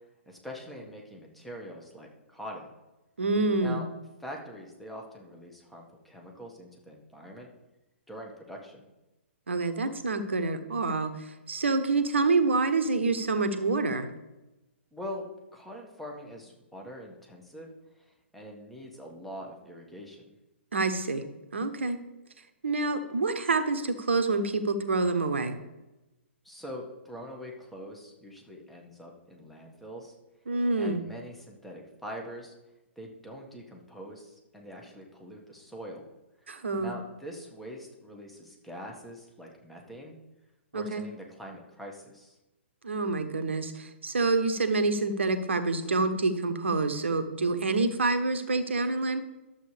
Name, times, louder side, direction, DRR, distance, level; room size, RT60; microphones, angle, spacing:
voice 1, 0.3-2.7 3.6-3.9 4.2-7.5 8.1-8.9 14.9-17.7 18.3-20.3 26.4-30.1 30.7-32.5 33.0-36.1 36.8-40.2 40.7-42.3, equal, ahead, -1 dB, 1.6 m, -43 dB
voice 2, 3.2-3.8 9.5-14.1 20.7-21.3 21.5-22.0 22.6-25.6 30.5-31.0 36.5-36.9 40.7-41.0 42.8-49.2, right 3 dB, 70° right, 9 dB, 1.0 m, -27 dB
12.0 x 7.5 x 3.4 m, 1.0 s
figure-of-eight pair, 120°, 7 cm